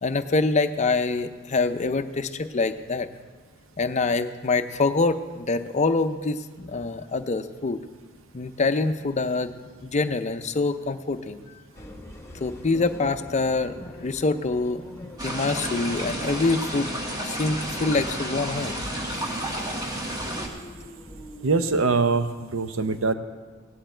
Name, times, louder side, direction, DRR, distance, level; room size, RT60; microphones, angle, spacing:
voice 1, 0.0-3.1 3.8-7.8 8.3-9.5 9.8-11.4 12.4-16.9 17.2-18.8, left 3 dB, 35° left, 8 dB, 0.5 m, -25 dB
sound 1, 11.7-22.0, equal, 15° left, 1.1 m, -45 dB
sound 2, 15.2-20.5, right 1 dB, 20° right, 1.5 m, -31 dB
voice 2, 21.4-23.1, right 4 dB, 70° right, 10 dB, 0.7 m, -23 dB
17.0 x 10.5 x 4.4 m, 1.5 s
head